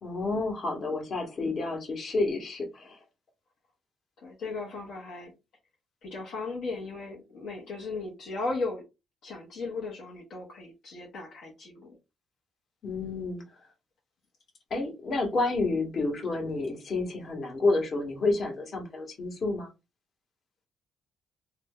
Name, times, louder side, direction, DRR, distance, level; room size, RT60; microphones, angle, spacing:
voice 1, 0.0-3.0 12.8-13.4 14.7-19.7, left 3 dB, 50° left, 1.2 m, -29 dB
voice 2, 4.2-5.3 6.0-8.8 9.2-12.0, left 3 dB, 70° left, 0.9 m, -36 dB
2.8 x 2.2 x 3.5 m
cardioid pair, 90°, 0 cm